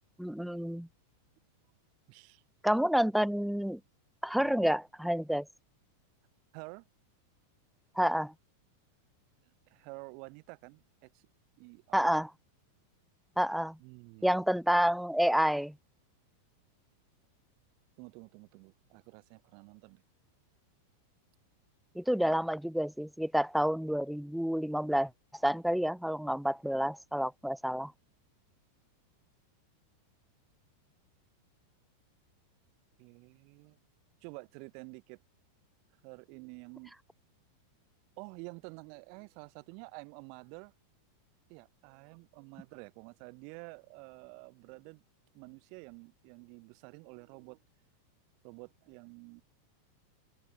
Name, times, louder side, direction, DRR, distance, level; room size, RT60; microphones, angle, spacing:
voice 1, 0.2-0.9 2.6-3.8 4.2-5.5 8.0-8.3 11.9-12.3 13.4-13.8 14.2-15.7 21.9-25.1 25.4-27.9, equal, ahead, 1.2 m, -29 dB
voice 2, 2.1-2.4 4.4-4.7 6.5-6.9 9.5-11.2 11.6-12.1 13.8-14.4 18.0-20.0 33.0-33.8 34.2-35.2 36.0-36.9 38.2-40.7 41.5-45.0 45.3-47.6 48.4-49.4, right 38 dB, 45° right, 5.8 m, -49 dB
figure-of-eight pair, 90°, 0 cm